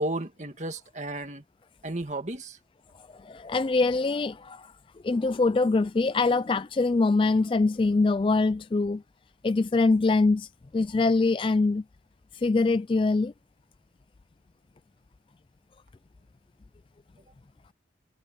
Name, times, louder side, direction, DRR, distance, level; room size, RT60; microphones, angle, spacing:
voice 1, 0.0-1.4 1.8-2.6, right 1 dB, 40° right, 2.0 m, -33 dB
voice 2, 3.0-4.7 5.0-9.0 9.4-11.8 12.3-13.3, left 3 dB, 30° left, 0.3 m, -24 dB
head